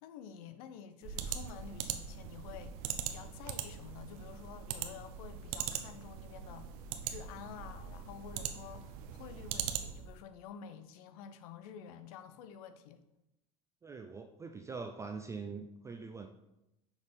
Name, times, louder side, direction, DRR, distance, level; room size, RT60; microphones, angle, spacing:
voice 1, 0.0-13.0, left 8 dB, 80° left, 0.6 m, -50 dB
sound 1, 1.0-10.2, right 9 dB, 75° right, 0.7 m, -41 dB
voice 2, 13.8-16.3, right 4 dB, 15° right, 0.4 m, -43 dB
6.3 x 3.6 x 5.1 m
supercardioid pair, 120°, 19 cm